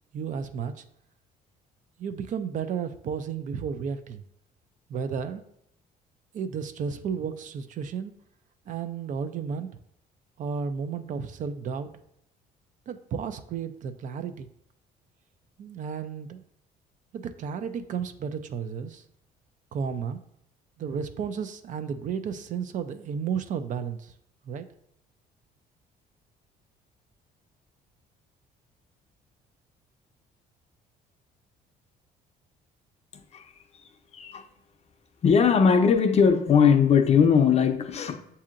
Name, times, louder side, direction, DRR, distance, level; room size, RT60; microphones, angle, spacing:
voice 1, 0.1-0.8 2.0-4.2 4.9-5.4 6.3-8.1 8.7-9.7 10.4-11.9 12.9-14.5 15.6-16.4 17.1-19.0 19.7-20.2 20.8-24.1 24.4-24.7, right 6 dB, 50° right, 0.4 m, -33 dB
voice 2, 34.1-34.5 35.2-38.2, left 6 dB, 40° left, 0.5 m, -20 dB
7.2 x 2.8 x 2.5 m
cardioid pair, 110°, 17 cm